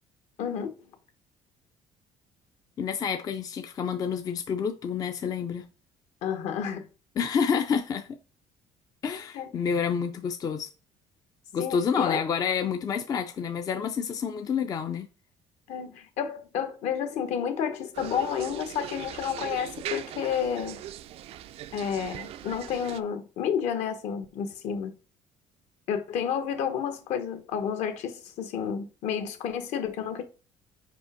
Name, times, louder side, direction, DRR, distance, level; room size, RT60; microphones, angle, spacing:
voice 1, 0.4-0.7 6.2-6.8 9.3-9.5 11.6-12.2 15.7-20.8 21.7-24.9 25.9-30.2, left 8 dB, 65° left, 1.2 m, -30 dB
voice 2, 2.8-5.6 7.2-8.1 9.0-10.7 11.5-15.1, left 6 dB, 30° left, 0.4 m, -28 dB
sound 1, 17.9-23.0, right 12 dB, 55° right, 0.4 m, -40 dB
5.3 x 5.0 x 4.9 m
cardioid pair, 160°, 12 cm